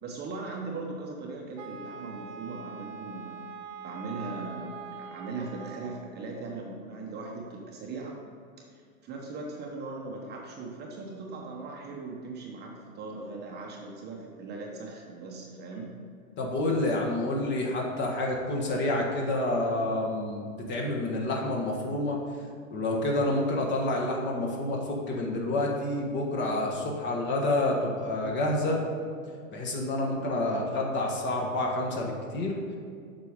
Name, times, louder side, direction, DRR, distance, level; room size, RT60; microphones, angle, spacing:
voice 1, 0.0-3.4 3.8-8.2 8.6-15.9, right 3 dB, 25° right, -1 dB, 1.1 m, -39 dB
Wind instrument woodwind instrument, 1.6-6.1, right 6 dB, 60° right, 1.1 m, -43 dB
voice 2, 16.4-22.2 22.7-28.8 29.5-32.5, left 1 dB, 25° left, -1 dB, 1.5 m, -28 dB
8.1 x 6.0 x 5.0 m, 2.2 s
hypercardioid pair, 120°, 42 cm